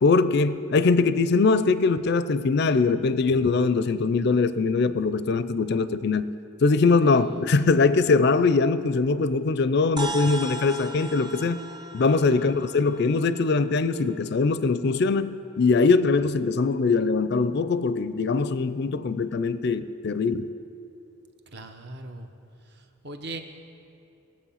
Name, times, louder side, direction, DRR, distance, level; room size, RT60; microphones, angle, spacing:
voice 1, 0.0-6.4 6.6-11.6 11.9-20.5, left 4 dB, 50° left, 0.4 m, -22 dB
voice 2, 7.0-7.5 12.3-12.5 21.5-22.3 22.6-23.4, right 2 dB, 50° right, 0.9 m, -40 dB
sound 1, 10.0-14.6, right 1 dB, 20° right, 0.5 m, -38 dB
20.5 x 7.5 x 5.7 m
head